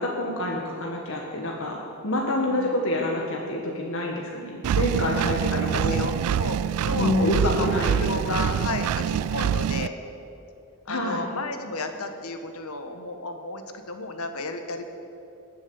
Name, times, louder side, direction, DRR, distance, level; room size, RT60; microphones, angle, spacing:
voice 1, 0.0-6.1 7.0-8.4 10.9-11.2, left 1 dB, 60° left, -1 dB, 1.6 m, -27 dB
Engine, 4.6-9.9, right 8 dB, 85° right, 0.3 m, -25 dB
voice 2, 5.5-7.7 8.0-10.0 10.8-14.8, left 2 dB, 75° left, 6 dB, 1.3 m, -33 dB
19.5 x 7.5 x 7.1 m, 2.7 s
head